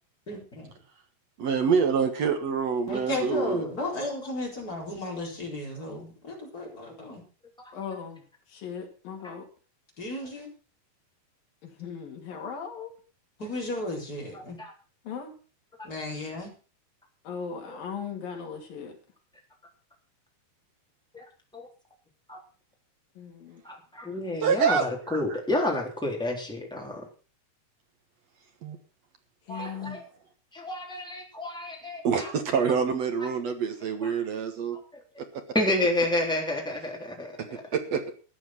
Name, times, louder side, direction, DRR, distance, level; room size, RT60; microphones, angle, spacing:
voice 1, 0.3-0.7 2.9-7.2 10.0-10.5 13.4-14.6 15.8-16.5, left 1 dB, 25° left, -1 dB, 4.6 m, -34 dB
voice 2, 1.4-3.6 24.4-25.4 28.6-28.8 29.6-30.0 32.0-34.8 35.2-35.4 37.4-37.5 37.7-38.1, right 6 dB, 55° right, 6 dB, 2.1 m, -27 dB
voice 3, 7.7-8.2 8.5-9.5 11.6-12.9 15.1-15.4 17.2-19.0 23.2-23.6 29.5-30.0, left 6 dB, 65° left, 3 dB, 4.3 m, -38 dB
voice 4, 23.6-27.0 29.5-30.0 30.5-32.3 34.0-34.1 35.5-37.3, left 1 dB, ahead, 0 dB, 2.9 m, -29 dB
14.5 x 9.2 x 6.0 m, 0.37 s
omnidirectional pair, 4.4 m